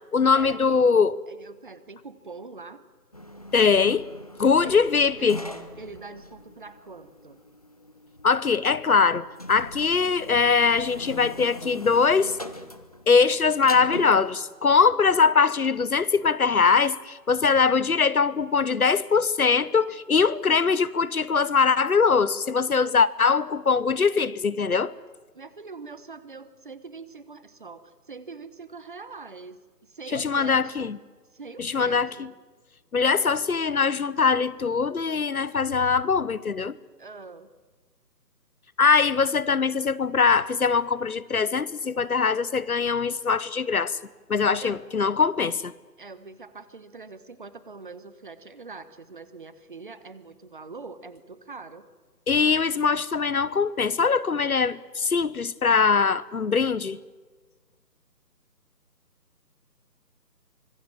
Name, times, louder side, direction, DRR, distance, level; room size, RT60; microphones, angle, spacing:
voice 1, 0.1-1.2 3.5-4.1 4.4-5.4 8.2-12.4 13.1-24.9 30.1-31.0 31.6-32.1 32.9-36.7 38.8-44.0 44.3-45.7 52.3-57.0, left 5 dB, 60° left, 1.0 m, -22 dB
voice 2, 1.3-2.8 4.6-4.8 5.2-5.4 5.8-7.4 25.3-30.9 31.3-32.3 37.0-37.5 44.6-44.8 46.0-51.8, right 4 dB, 30° right, 1.2 m, -43 dB
sound 1, 3.1-14.4, left 1 dB, 25° left, 0.8 m, -42 dB
25.0 x 22.5 x 7.3 m
figure-of-eight pair, 155°, 50 cm